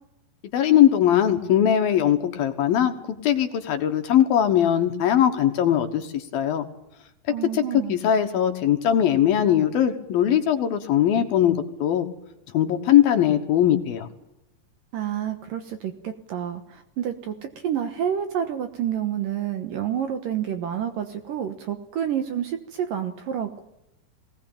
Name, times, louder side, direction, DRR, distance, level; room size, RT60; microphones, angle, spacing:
voice 1, 0.5-2.9 3.2-6.7 7.5-7.6 7.9-12.1 12.5-14.1, left 10 dB, 65° left, 6 dB, 2.8 m, -20 dB
voice 2, 7.3-8.0 14.9-23.6, right 9 dB, 65° right, 8 dB, 2.4 m, -29 dB
21.0 x 18.5 x 8.8 m, 0.86 s
omnidirectional pair, 5.1 m